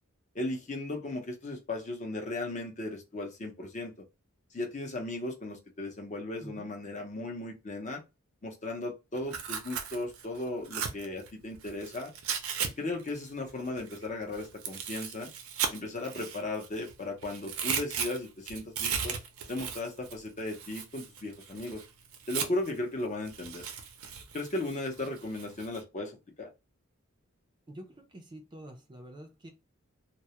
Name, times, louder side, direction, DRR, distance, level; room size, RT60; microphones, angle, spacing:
voice 1, 0.3-3.9 4.5-8.0 8.4-12.1 12.8-15.3 15.7-19.2 19.5-21.8 22.3-23.6 24.3-26.5, left 2 dB, 35° left, 0.6 m, -36 dB
Tearing, 9.2-12.7 13.0-16.9 17.2-22.8 23.2-25.8, right 7 dB, 85° right, 0.5 m, -37 dB
voice 2, 27.7-29.5, right 1 dB, 20° right, 0.4 m, -47 dB
2.2 x 2.0 x 2.8 m
head